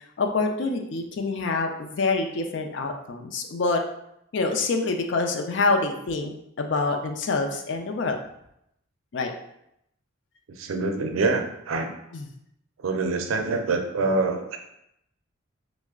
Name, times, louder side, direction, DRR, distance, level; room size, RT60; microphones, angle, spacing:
voice 1, 0.2-3.8 4.3-8.2 9.1-9.3 12.1-12.2, left 3 dB, 60° left, 4 dB, 0.4 m, -26 dB
voice 2, 10.5-11.9 12.8-14.6, right 3 dB, 90° right, 5 dB, 0.4 m, -25 dB
3.1 x 2.0 x 3.5 m, 0.78 s
head